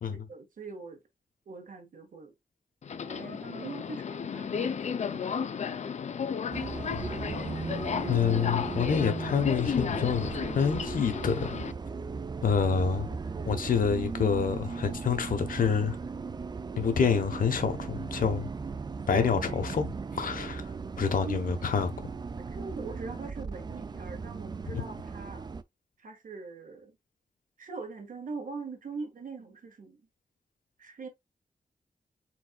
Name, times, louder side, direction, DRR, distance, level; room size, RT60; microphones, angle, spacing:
voice 1, 0.3-1.0 1.4-2.3 3.0-6.1 21.2-21.6 22.4-25.5 26.0-26.9 27.6-30.0 30.8-31.1, right 4 dB, 75° right, 1.7 m, -42 dB
Subway metro underground, 2.8-11.7, left 7 dB, 55° left, 0.5 m, -34 dB
Bus, 6.5-25.6, right 4 dB, 30° right, 0.4 m, -37 dB
voice 2, 8.1-11.4 12.4-13.1 13.4-16.0 16.8-18.5 19.1-20.6 21.0-21.9, left 6 dB, 85° left, 1.0 m, -27 dB
4.6 x 4.3 x 2.3 m
wide cardioid pair, 115°, 14 cm